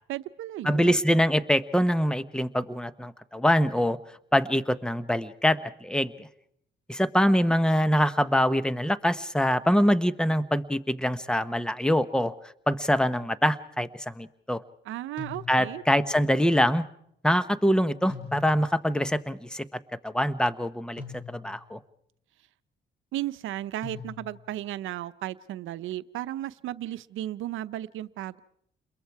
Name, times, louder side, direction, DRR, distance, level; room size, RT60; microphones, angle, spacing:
voice 1, 0.1-1.0 14.8-15.8 23.1-28.4, right 13 dB, 85° right, 14 dB, 0.8 m, -35 dB
voice 2, 0.6-4.0 4.3-6.3 6.9-12.3 12.7-14.6 15.5-16.8 17.2-19.6 20.0-21.0 21.3-21.8, equal, 5° left, 14 dB, 1.0 m, -24 dB
sound 1, 15.2-15.9 18.1-18.9 21.0-21.7 23.8-24.6, left 5 dB, 80° left, 4.9 m, -42 dB
29.0 x 22.0 x 4.7 m, 0.71 s
cardioid pair, 90°, 20 cm